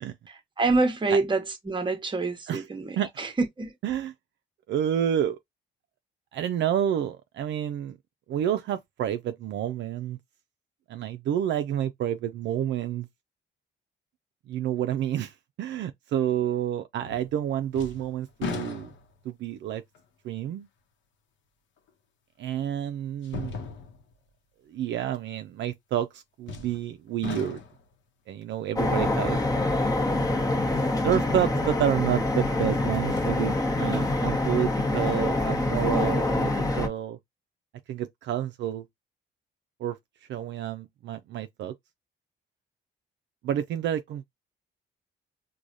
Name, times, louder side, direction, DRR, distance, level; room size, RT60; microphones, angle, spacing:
voice 1, 0.3-3.3 3.6-3.7, right 3 dB, 25° right, 0.9 m, -27 dB
voice 2, 3.8-4.1 4.7-5.4 6.3-8.0 8.3-10.2 10.9-13.1 14.5-18.9 19.2-19.8 20.2-20.7 22.4-23.5 24.7-27.6 28.3-29.4 31.0-36.5 36.8-37.2 37.9-38.8 39.8-40.0 40.3-41.7 43.4-44.2, right 10 dB, 65° right, 0.4 m, -29 dB
sound 1, 17.0-17.4 17.7-19.3 19.9-20.0 21.9-22.0 23.2-24.1 26.5-26.9 27.2-27.9 30.9-31.0 32.4-33.3 33.8-33.9, left 6 dB, 70° left, 0.8 m, -38 dB
sound 2, 28.8-36.9, left 2 dB, 20° left, 1.0 m, -25 dB
4.7 x 2.2 x 2.6 m
cardioid pair, 90°, 20 cm